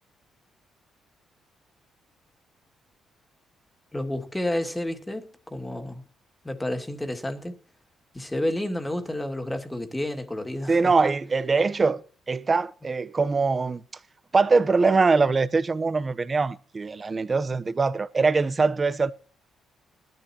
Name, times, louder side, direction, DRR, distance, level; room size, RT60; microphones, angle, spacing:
voice 1, 3.9-6.0 6.4-7.6 8.1-10.8, left 1 dB, 10° left, 2.4 m, -30 dB
voice 2, 10.7-12.0 12.3-13.8 14.3-19.1, right 4 dB, 30° right, 0.9 m, -22 dB
20.0 x 13.5 x 3.0 m
cardioid pair, 90°, 0 cm